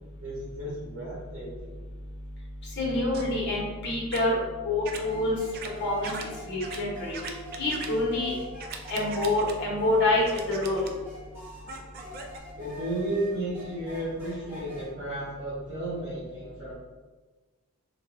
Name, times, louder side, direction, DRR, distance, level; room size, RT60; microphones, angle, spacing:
voice 1, 0.2-1.7 12.5-16.7, right 1 dB, 75° right, -10 dB, 1.3 m, -33 dB
voice 2, 2.8-4.4 4.6-5.4 5.8-6.1 6.5-7.1 7.6-8.3 8.9-10.8, left 2 dB, 50° left, -5 dB, 1.1 m, -26 dB
sound 1, 3.1-3.3 4.1-4.2 4.8-5.0 5.5-5.7 6.0-6.2 6.6-6.8 7.1-7.9 8.6-9.5 10.3-10.9 11.7-12.4, right 5 dB, 45° right, 0.3 m, -39 dB
sound 2, 4.8-14.8, equal, 10° right, 1.4 m, -45 dB
3.9 x 2.6 x 2.6 m, 1.3 s
head